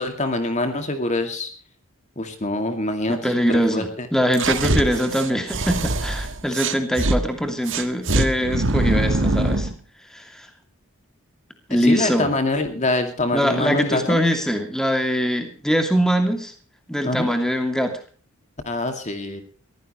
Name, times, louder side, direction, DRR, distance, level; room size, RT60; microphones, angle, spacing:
voice 1, 0.0-1.5 2.2-4.1 11.8-14.2 17.0-17.3 18.7-19.4, left 2 dB, 35° left, 6 dB, 2.3 m, -25 dB
voice 2, 3.1-9.7 10.1-10.5 11.7-12.3 13.3-16.5 16.9-18.0, equal, 5° left, 5 dB, 2.6 m, -22 dB
sound 1, 4.3-7.2 7.7-9.7, right 2 dB, 60° right, 1.7 m, -23 dB
22.5 x 15.5 x 3.2 m, 0.40 s
head